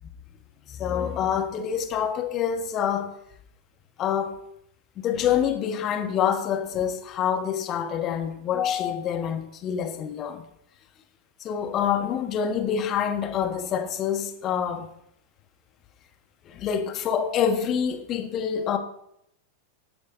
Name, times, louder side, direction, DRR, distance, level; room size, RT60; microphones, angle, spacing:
voice 1, 0.8-3.1 4.0-4.4 5.0-10.4 11.4-14.9 16.5-18.8, left 8 dB, 35° left, 1.3 m, -26 dB
18.5 x 10.0 x 2.8 m
figure-of-eight pair, 90°, 0 cm